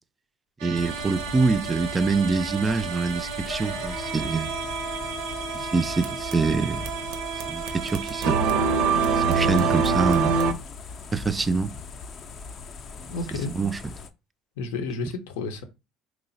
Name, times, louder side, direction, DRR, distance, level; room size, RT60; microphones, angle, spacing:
voice 1, 0.6-4.5 5.5-6.9 7.5-8.6 9.1-10.4 11.1-11.7 13.0-14.0, right 4 dB, 20° right, 0.3 m, -25 dB
sound 1, 0.6-10.5, right 5 dB, 80° right, 0.6 m, -27 dB
sound 2, 0.7-14.1, left 5 dB, 45° left, 0.4 m, -40 dB
sound 3, 3.5-9.5, left 6 dB, 20° left, 0.8 m, -42 dB
voice 2, 13.1-13.5 14.6-15.6, left 3 dB, 90° left, 0.6 m, -31 dB
3.0 x 2.0 x 3.9 m
supercardioid pair, 95°, 0 cm